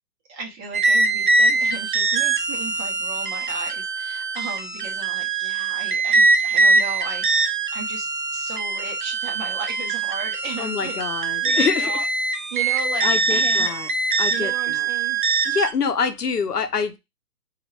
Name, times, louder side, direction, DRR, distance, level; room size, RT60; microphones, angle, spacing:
voice 1, 0.3-11.0 11.4-12.0 12.5-13.7 14.3-15.2, right 4 dB, 20° right, 0.9 m, -35 dB
sound 1, 0.7-15.7, right 3 dB, 35° right, 0.5 m, -22 dB
voice 2, 10.6-12.1 13.0-13.9 14.2-14.9 15.5-17.0, left 6 dB, 85° left, 0.9 m, -26 dB
2.8 x 2.5 x 4.3 m
figure-of-eight pair, 135°, 46 cm